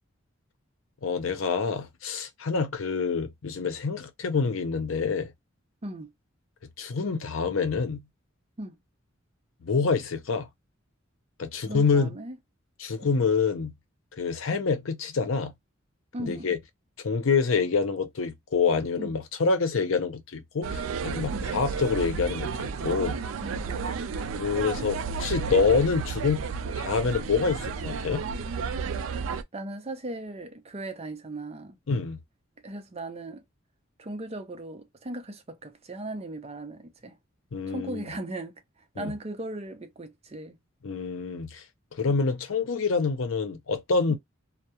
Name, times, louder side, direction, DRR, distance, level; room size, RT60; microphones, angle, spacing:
voice 1, 1.0-5.3 6.8-8.0 9.6-10.5 11.4-12.1 12.8-13.7 14.1-15.5 16.2-16.6 17.0-23.2 24.3-26.5 26.7-28.2 31.9-32.2 37.5-38.1 39.0-39.1 40.8-41.6 41.9-44.2, left 5 dB, 85° left, 0.6 m, -26 dB
voice 2, 11.5-12.4 13.0-13.1 16.1-16.5 19.0-19.1 21.3-21.5 23.4-23.8 29.5-31.8 32.6-33.4 34.0-37.2 37.7-38.5 39.0-40.6 44.1-44.2, right 1 dB, 30° right, 0.5 m, -37 dB
sound 1, 20.6-29.4, right 5 dB, 85° right, 0.4 m, -32 dB
2.3 x 2.0 x 2.8 m
head